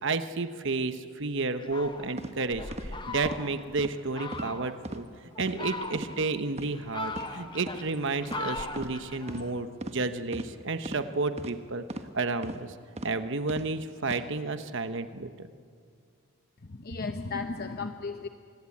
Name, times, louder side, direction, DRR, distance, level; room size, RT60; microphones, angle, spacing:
voice 1, 0.0-5.0 5.4-11.8 12.1-12.7 13.0-15.5, right 3 dB, 55° right, 9 dB, 1.0 m, -31 dB
Fowl, 1.6-3.7 4.1-4.8 5.3-6.3 6.7-9.5, left 2 dB, 20° left, 1.2 m, -38 dB
sound 1, 2.2-2.3 2.7-2.9 3.2-3.4 3.8-3.9 4.3-4.5 4.8-5.0 5.4-5.6 5.9-6.1 6.5-6.7 7.1-7.3 7.6-7.8 8.3-8.4 8.7-8.9 9.3-9.4 9.8-10.0 10.3-10.5 10.8-11.0 11.4-11.5 11.9-12.1 12.4-12.6 13.0-13.1 13.5-13.7 14.0-14.2, right 1 dB, 30° right, 1.2 m, -38 dB
voice 2, 16.6-18.3, left 4 dB, 45° left, 7 dB, 0.8 m, -35 dB
26.0 x 20.5 x 8.5 m, 2.1 s
head